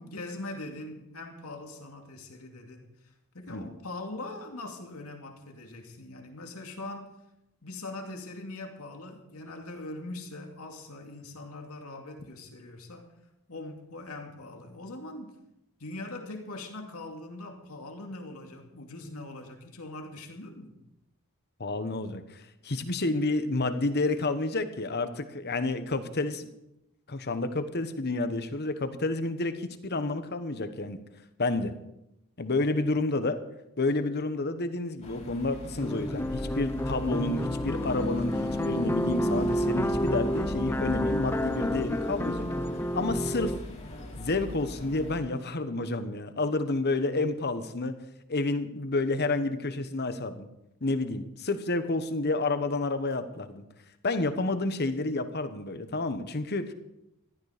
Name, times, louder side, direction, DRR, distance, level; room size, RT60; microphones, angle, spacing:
voice 1, 0.0-7.1 7.6-13.1 13.5-15.4 15.8-20.8, left 2 dB, 80° left, 2.5 m, -42 dB
voice 2, 21.6-26.5 27.1-31.0 31.4-31.7 32.4-33.4 33.8-42.5 42.9-43.5 44.2-47.9 48.3-50.5 50.8-53.6 54.0-56.7, left 2 dB, 50° left, 1.2 m, -30 dB
sound 1, 35.0-45.2, left 2 dB, 30° left, 2.7 m, -37 dB
sound 2, 35.8-43.6, equal, 10° left, 0.5 m, -30 dB
15.0 x 12.5 x 5.1 m
head